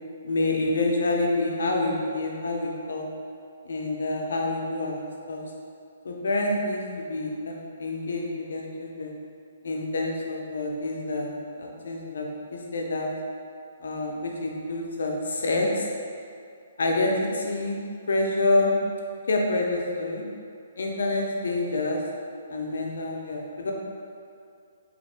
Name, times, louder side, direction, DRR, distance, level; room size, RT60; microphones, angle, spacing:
voice 1, 0.2-3.0 3.6-5.4 6.0-9.1 9.6-13.1 13.8-15.9 16.8-17.8 18.1-18.7 19.3-20.2 20.8-22.0 22.5-23.7, left 2 dB, 80° left, 0 dB, 0.6 m, -27 dB
3.4 x 2.5 x 4.2 m, 2.4 s
hypercardioid pair, 155°, 0 cm